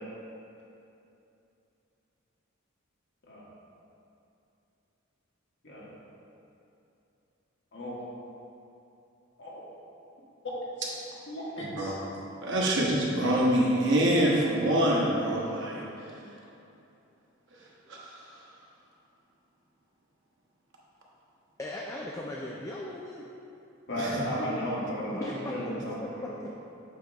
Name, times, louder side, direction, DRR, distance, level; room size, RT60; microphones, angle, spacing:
voice 1, 7.7-8.0 9.4-9.6 10.4-10.5 10.8-10.9 11.3-11.9 23.9-26.4, equal, 55° left, -6 dB, 1.4 m, -34 dB
voice 2, 11.6-12.1 12.4-15.9 17.6-18.4 23.9-24.2, right 1 dB, 60° right, -4 dB, 1.1 m, -26 dB
voice 3, 21.6-23.2 25.1-25.7 26.2-26.6, left 1 dB, 15° left, -2 dB, 0.3 m, -38 dB
7.6 x 3.0 x 4.6 m, 2.8 s
head